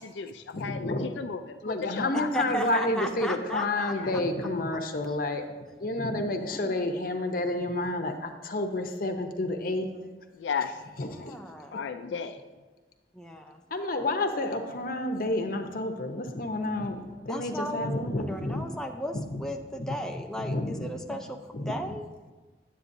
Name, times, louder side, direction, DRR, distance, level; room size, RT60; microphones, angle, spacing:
voice 1, 0.0-2.4 2.8-2.9 4.0-4.1 10.4-10.7 11.7-12.4, left 6 dB, 85° left, 9 dB, 0.4 m, -34 dB
voice 2, 0.5-1.2 1.6-5.4 5.8-9.9 11.0-11.4 13.7-18.6 19.1-19.4 20.4-21.2 21.5-21.7, left 2 dB, 50° left, 5 dB, 0.7 m, -30 dB
voice 3, 2.3-4.2 5.0-5.2 6.5-6.8 11.0-11.8 13.1-13.6 17.3-21.4 21.7-22.3, equal, 5° left, 3 dB, 0.3 m, -36 dB
9.7 x 8.0 x 2.6 m, 1.3 s
head